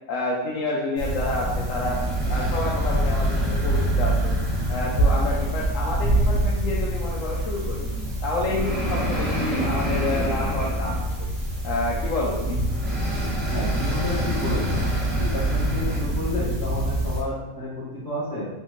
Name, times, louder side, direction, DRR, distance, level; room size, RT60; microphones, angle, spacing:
voice 1, 0.1-2.0 2.3-4.3 4.7-7.9 8.2-11.3 11.6-12.6, left 2 dB, 75° left, -4 dB, 1.0 m, -29 dB
sound 1, 1.0-17.2, right 1 dB, 50° right, 1.4 m, -25 dB
voice 2, 13.5-14.8 15.2-18.5, left 1 dB, 35° left, -9 dB, 1.8 m, -30 dB
4.3 x 3.5 x 3.1 m, 1.1 s
omnidirectional pair, 1.4 m